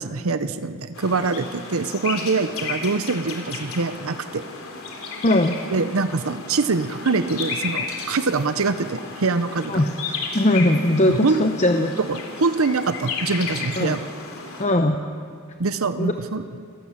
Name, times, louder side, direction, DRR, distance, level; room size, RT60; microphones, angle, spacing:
voice 1, 0.0-4.4 5.7-9.8 11.1-11.4 12.1-14.0 15.6-16.4, right 4 dB, 70° right, 11 dB, 0.8 m, -24 dB
sound 1, 0.9-14.7, left 4 dB, 70° left, 3.6 m, -33 dB
voice 2, 5.2-5.6 9.7-11.9 13.8-14.0 14.6-15.0 16.0-16.1, left 1 dB, 30° left, 5 dB, 0.9 m, -20 dB
28.5 x 15.0 x 7.3 m, 2.2 s
head